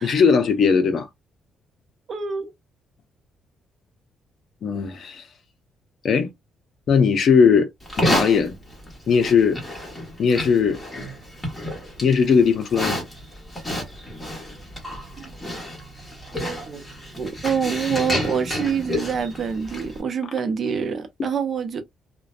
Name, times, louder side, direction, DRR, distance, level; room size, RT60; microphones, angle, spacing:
voice 1, 0.0-1.1 4.6-5.3 6.0-6.3 6.9-7.7 8.0-8.5 9.1-9.6 10.2-10.8 12.0-13.0, left 6 dB, 55° left, 0.6 m, -18 dB
voice 2, 2.1-2.5 15.3-15.4 16.7-16.8 17.2-21.8, right 6 dB, 45° right, 0.6 m, -26 dB
Livestock farm animals working animals, 7.8-20.0, equal, 10° left, 1.3 m, -30 dB
2.5 x 2.2 x 2.3 m
cardioid pair, 115°, 0 cm